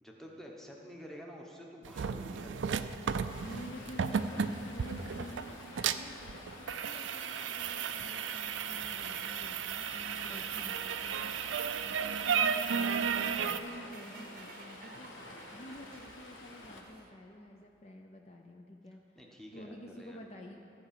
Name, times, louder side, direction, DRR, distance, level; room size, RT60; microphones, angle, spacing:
voice 1, 0.0-2.9 10.4-10.7 15.5-15.8 19.1-20.2, equal, ahead, -1 dB, 1.0 m, -50 dB
sound 1, 1.8-13.6, right 7 dB, 75° right, 0.4 m, -34 dB
Stream, 3.3-16.8, left 2 dB, 90° left, 1.3 m, -50 dB
voice 2, 3.4-5.5 5.8-11.2 11.8-12.0 12.7-20.6, equal, 35° left, 2 dB, 0.5 m, -49 dB
sound 2, 8.8-17.1, right 4 dB, 45° right, 0.7 m, -55 dB
14.0 x 4.9 x 7.4 m, 2.8 s
head